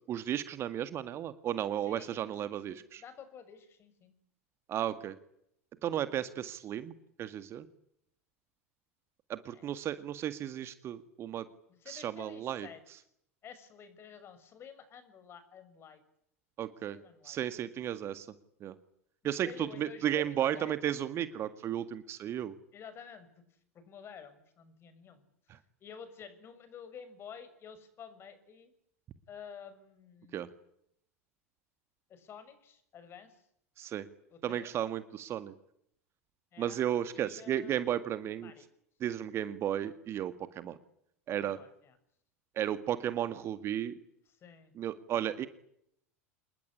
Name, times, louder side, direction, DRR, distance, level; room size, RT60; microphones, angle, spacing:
voice 1, 0.1-3.0 4.7-5.2 5.8-6.9 7.2-7.7 9.3-11.5 11.9-12.7 16.6-17.0 17.2-18.3 18.6-18.7 19.2-22.5 30.3-30.5 33.8-34.1 34.4-35.5 36.6-38.5 39.0-40.8 41.3-41.6 42.6-43.9 44.8-45.5, right 11 dB, 35° right, 12 dB, 1.9 m, -34 dB
voice 2, 1.8-4.1 9.5-9.7 11.7-12.8 13.4-16.0 16.9-17.4 19.4-20.7 22.7-23.3 23.7-25.2 25.5-28.7 29.3-30.4 32.1-33.4 34.3-34.7 36.5-36.8 37.1-37.8 38.4-38.7 41.4-42.0 44.3-44.7, left 7 dB, 30° left, 12 dB, 6.5 m, -50 dB
28.0 x 21.5 x 9.9 m, 0.72 s
figure-of-eight pair, 80°, 8 cm